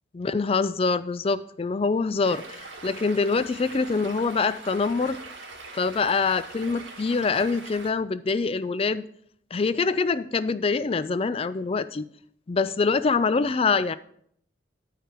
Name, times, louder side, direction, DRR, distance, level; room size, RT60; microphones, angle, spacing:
voice 1, 0.1-5.2 5.7-9.0 9.5-12.1 12.5-14.0, left 4 dB, 30° left, 15 dB, 0.3 m, -25 dB
Stream, 2.2-7.9, right 3 dB, 85° right, 1.9 m, -42 dB
11.0 x 4.9 x 4.5 m, 0.66 s
head